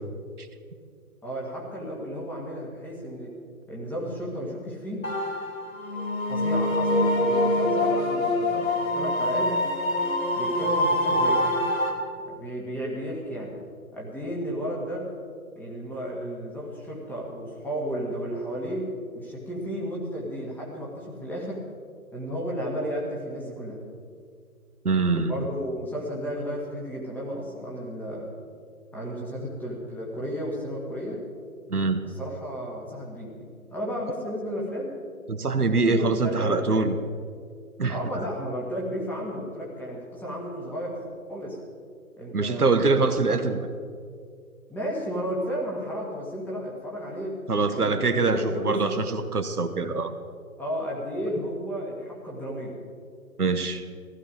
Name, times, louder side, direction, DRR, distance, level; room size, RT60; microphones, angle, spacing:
voice 1, 1.2-3.3 3.7-5.1 6.3-9.6 10.3-11.4 12.2-13.6 13.9-15.1 15.6-21.7 22.1-23.8 25.3-28.3 28.9-31.2 32.0-33.3 33.7-35.0 35.7-36.6 37.9-41.6 42.2-42.7 44.7-47.4 47.7-49.0 50.6-52.8, equal, 5° left, -4 dB, 1.9 m, -33 dB
sound 1, 5.0-11.9, left 1 dB, 65° left, 3.1 m, -25 dB
voice 2, 24.8-25.3 31.7-32.0 35.3-36.9 37.8-38.0 42.3-43.6 47.5-50.1 53.4-53.8, right 3 dB, 85° right, 8 dB, 1.4 m, -24 dB
15.0 x 15.0 x 5.1 m, 2.2 s
figure-of-eight pair, 140°, 44 cm